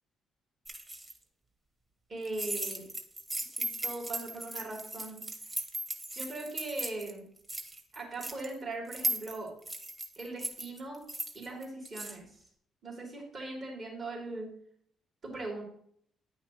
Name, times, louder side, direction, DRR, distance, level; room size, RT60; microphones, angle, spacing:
sound 1, 0.6-1.1 2.2-7.1 7.4-8.5 8.9-12.2, right 1 dB, 25° right, 1.5 m, -37 dB
voice 1, 2.1-2.8 3.5-5.5 6.1-7.2 7.9-9.5 10.1-11.0 11.3-12.4 12.8-14.5 15.2-15.6, right 2 dB, 50° right, -1 dB, 3.5 m, -40 dB
9.3 x 5.7 x 3.1 m, 0.65 s
supercardioid pair, 65°, 0 cm